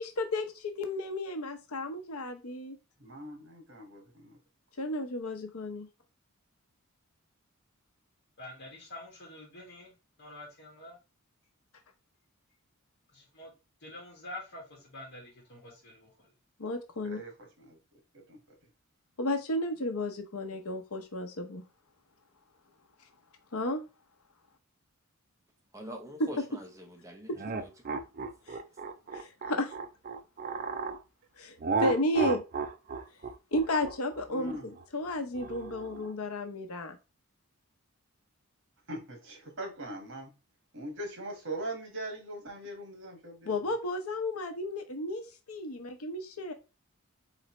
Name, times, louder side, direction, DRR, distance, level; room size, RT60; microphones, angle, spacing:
voice 1, 0.2-2.8 4.8-5.9 16.6-17.2 19.2-21.6 23.5-23.8 27.3-27.4 28.5-28.6 29.1-29.7 31.4-32.4 33.5-37.0 43.5-46.5, left 1 dB, 85° left, 0.8 m, -33 dB
voice 2, 3.0-4.4 17.0-17.8 18.1-18.4 34.3-34.7 38.9-40.3 40.7-43.8, right 1 dB, 60° right, 1.8 m, -41 dB
voice 3, 8.4-9.9 10.2-11.0 13.1-13.5 13.8-16.3, left 1 dB, 55° left, 2.1 m, -47 dB
voice 4, 25.7-28.0, equal, 15° right, 0.8 m, -45 dB
sound 1, 27.4-31.0 31.6-36.1, right 4 dB, 40° right, 0.5 m, -34 dB
4.1 x 3.9 x 3.2 m
head